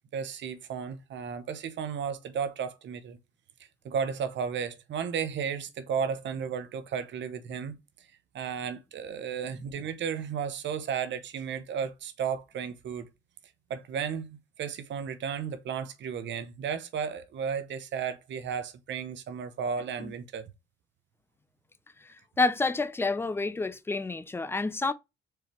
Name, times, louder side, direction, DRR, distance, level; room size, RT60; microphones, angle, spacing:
voice 1, 0.1-3.2 3.8-7.8 8.3-13.1 13.7-20.5, right 7 dB, 65° right, 0.8 m, -34 dB
voice 2, 22.4-24.9, left 3 dB, 10° left, 0.4 m, -28 dB
4.7 x 3.3 x 2.9 m
cardioid pair, 90°, 20 cm